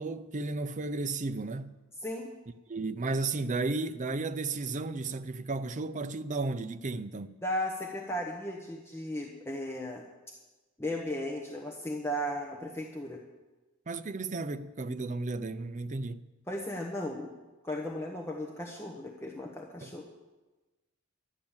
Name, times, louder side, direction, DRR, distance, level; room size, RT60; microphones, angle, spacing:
voice 1, 0.0-1.8 2.7-7.4 13.9-16.2 19.8-19.9, right 3 dB, 40° right, 0.5 m, -34 dB
voice 2, 2.0-2.3 7.4-10.0 10.8-13.2 16.5-17.3 17.6-20.0, left 1 dB, 10° left, 1.1 m, -36 dB
12.0 x 10.5 x 7.2 m
head